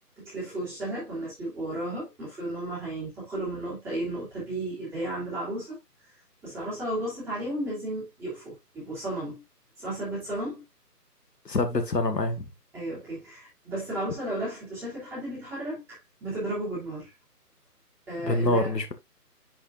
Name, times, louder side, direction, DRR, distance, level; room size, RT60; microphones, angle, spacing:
voice 1, 0.2-5.8 6.4-9.4 9.8-10.6 12.7-17.1 18.1-18.7, right 1 dB, 5° right, 3.0 m, -34 dB
voice 2, 11.4-12.5 18.2-18.9, left 2 dB, 85° left, 1.7 m, -26 dB
10.0 x 4.8 x 2.4 m
figure-of-eight pair, 160°, 48 cm